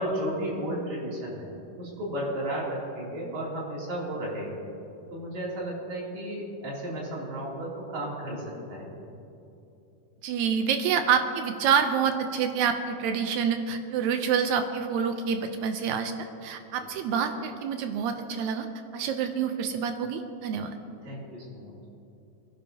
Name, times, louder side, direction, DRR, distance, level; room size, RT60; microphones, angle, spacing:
voice 1, 0.0-1.5 1.8-4.6 5.1-9.1 21.0-21.8, right 1 dB, 55° right, -5 dB, 4.2 m, -33 dB
voice 2, 10.2-16.1 16.4-18.7 18.9-20.7, right 7 dB, 75° right, 7 dB, 1.7 m, -27 dB
23.5 x 11.0 x 2.8 m, 2.8 s
omnidirectional pair, 3.9 m